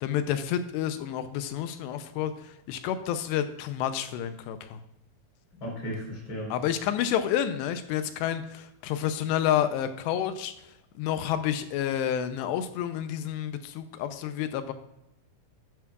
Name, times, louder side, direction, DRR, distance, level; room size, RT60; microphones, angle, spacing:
voice 1, 0.0-4.8 6.5-10.5 11.0-14.7, left 10 dB, 85° left, 10 dB, 2.7 m, -29 dB
voice 2, 5.6-6.5, equal, 30° left, -3 dB, 4.4 m, -35 dB
12.5 x 9.4 x 2.4 m, 0.86 s
omnidirectional pair, 5.1 m